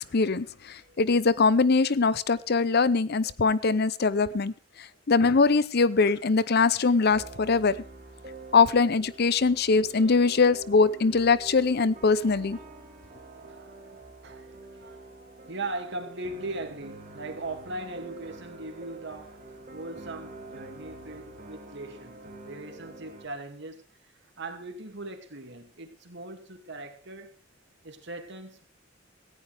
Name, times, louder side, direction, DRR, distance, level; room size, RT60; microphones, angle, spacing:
voice 1, 0.0-4.5 4.8-7.8 8.5-12.6, left 4 dB, 55° left, 0.7 m, -22 dB
sound 1, 7.1-23.3, right 2 dB, 45° right, 2.8 m, -46 dB
voice 2, 13.3-22.2 22.4-27.3 27.8-28.6, right 2 dB, 65° right, 2.5 m, -40 dB
18.0 x 15.0 x 3.5 m
head